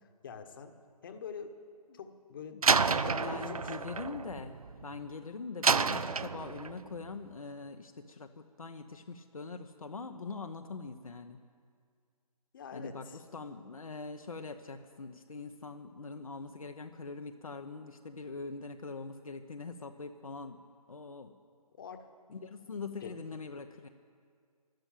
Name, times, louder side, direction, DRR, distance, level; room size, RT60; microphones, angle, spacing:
voice 1, 0.2-0.7 1.0-1.6 1.9-2.6 2.9-4.4 12.5-13.2 21.8-22.0 23.0-23.2, left 6 dB, 35° left, 7 dB, 1.3 m, -45 dB
voice 2, 2.5-11.4 12.7-20.6 20.9-21.3 22.3-23.9, left 4 dB, 60° left, 5 dB, 0.9 m, -43 dB
Slam, 2.6-5.1 5.6-6.9, right 5 dB, 65° right, 0.6 m, -29 dB
12.5 x 12.0 x 8.9 m, 2.1 s
figure-of-eight pair, 140°, 20 cm